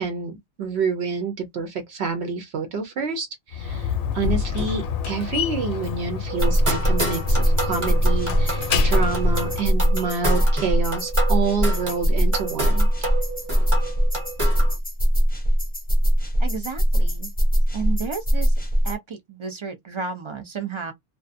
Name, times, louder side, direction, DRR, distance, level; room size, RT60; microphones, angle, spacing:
voice 1, 0.0-12.9, right 5 dB, 80° right, 0.9 m, -28 dB
Slam, 3.5-9.7, left 7 dB, 65° left, 0.7 m, -28 dB
sound 1, 6.3-14.8, right 2 dB, 30° right, 1.0 m, -30 dB
sound 2, 6.4-18.9, equal, 10° left, 0.5 m, -21 dB
voice 2, 16.4-17.3 17.7-18.6 18.8-20.9, right 5 dB, 50° right, 0.3 m, -32 dB
2.4 x 2.2 x 2.5 m
omnidirectional pair, 1.1 m